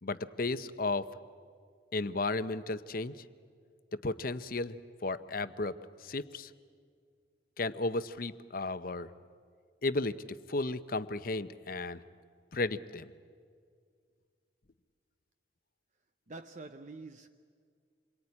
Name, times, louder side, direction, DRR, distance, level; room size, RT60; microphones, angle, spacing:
voice 1, 0.0-1.1 1.9-3.2 4.0-5.7 6.0-6.5 7.6-9.1 9.8-12.0 12.5-13.1, left 2 dB, 50° left, 12 dB, 0.8 m, -34 dB
voice 2, 16.3-17.3, right 3 dB, 40° right, 8 dB, 0.7 m, -46 dB
27.0 x 22.5 x 9.8 m, 2.1 s
head